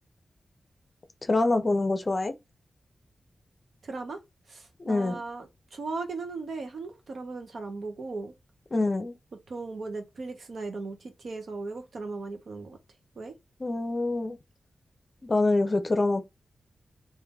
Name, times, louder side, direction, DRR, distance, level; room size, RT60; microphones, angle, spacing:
voice 1, 1.3-2.3 4.9-5.2 8.7-9.1 13.6-14.4 15.2-16.2, left 2 dB, 30° left, 0.6 m, -25 dB
voice 2, 3.8-4.2 4.5-8.3 9.5-12.8 13.1-13.3, right 3 dB, 65° right, 0.9 m, -37 dB
3.7 x 2.6 x 3.5 m
wide cardioid pair, 120°, 0 cm